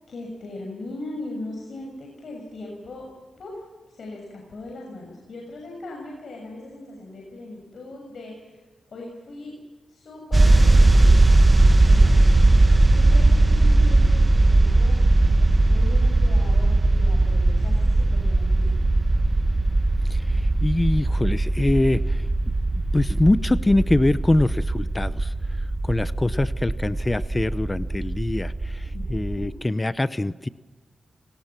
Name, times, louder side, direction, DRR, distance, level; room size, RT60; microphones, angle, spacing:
voice 1, 0.1-3.0 3.4-3.6 3.9-8.6 8.9-9.5 9.9-11.3 11.8-12.3 12.9-15.0 15.4-18.7 28.9-29.5, left 2 dB, 65° left, -1 dB, 6.8 m, -39 dB
sound 1, 10.3-29.5, right 2 dB, 30° right, 1.7 m, -19 dB
voice 2, 20.1-22.3 22.9-25.3 25.8-30.5, left 2 dB, 20° left, 14 dB, 0.8 m, -23 dB
29.5 x 19.5 x 6.0 m, 1.3 s
cardioid pair, 75°, 0 cm